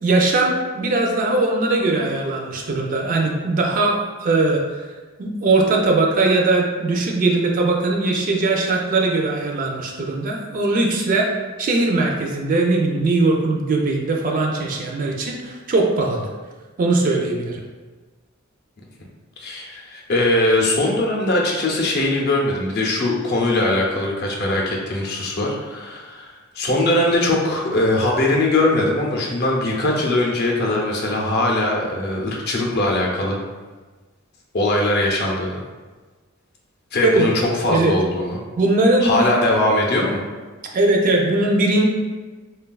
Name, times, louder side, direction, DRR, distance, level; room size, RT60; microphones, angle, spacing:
voice 1, 0.0-4.6 5.2-11.3 11.6-16.3 16.8-17.6 37.0-37.3 37.7-37.9 38.6-39.4 40.7-41.8, right 2 dB, 40° right, 0 dB, 0.4 m, -20 dB
voice 2, 19.4-33.4 34.5-35.6 36.9-38.4 39.0-40.2, left 1 dB, 55° left, -2 dB, 0.5 m, -21 dB
3.3 x 2.2 x 2.2 m, 1.3 s
head